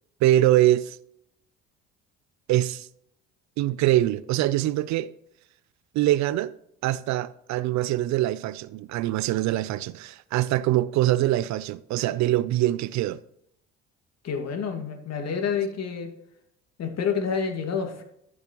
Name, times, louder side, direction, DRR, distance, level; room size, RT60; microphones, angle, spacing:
voice 1, 0.2-1.0 2.5-2.9 3.6-5.1 5.9-6.5 6.8-13.2, right 14 dB, 60° right, 0.5 m, -23 dB
voice 2, 14.2-16.1 16.8-18.0, left 6 dB, 50° left, 2.1 m, -28 dB
14.5 x 6.3 x 3.0 m
hypercardioid pair, 60°, 32 cm